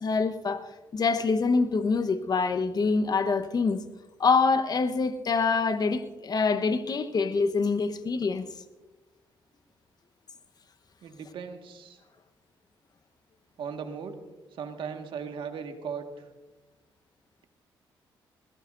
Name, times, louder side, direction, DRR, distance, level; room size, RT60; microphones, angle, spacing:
voice 1, 0.0-3.9 4.2-8.5, left 4 dB, 45° left, 1.1 m, -25 dB
voice 2, 11.0-12.0 13.6-14.2 14.5-16.2, right 6 dB, 70° right, 1.7 m, -37 dB
21.5 x 15.5 x 2.6 m
supercardioid pair, 65°, 9 cm